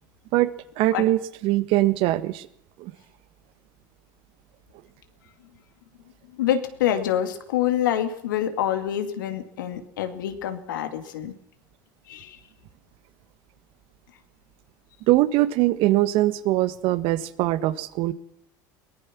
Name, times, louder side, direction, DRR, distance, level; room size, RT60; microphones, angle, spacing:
voice 1, 0.3-2.5 2.8-2.9 15.1-18.1, right 16 dB, 65° right, 14 dB, 1.5 m, -22 dB
voice 2, 6.3-11.3 12.1-12.4, left 10 dB, 85° left, 8 dB, 2.4 m, -26 dB
22.5 x 19.5 x 6.1 m, 0.74 s
hypercardioid pair, 80°, 10 cm